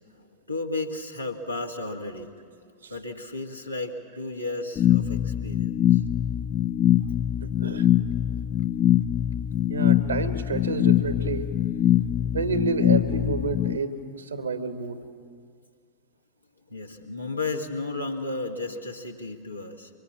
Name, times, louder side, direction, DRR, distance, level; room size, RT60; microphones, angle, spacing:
voice 1, 0.2-2.3 2.9-6.0 8.3-8.4 13.5-13.6 14.8-15.0 16.7-19.9, left 2 dB, 90° left, 1 dB, 1.8 m, -34 dB
sound 1, 4.8-13.8, left 10 dB, 30° left, 0.5 m, -23 dB
voice 2, 7.4-7.9 9.7-11.5 12.3-15.0, right 3 dB, 75° right, 8 dB, 1.7 m, -29 dB
24.5 x 23.0 x 7.4 m, 2.2 s
figure-of-eight pair, 90°, 0 cm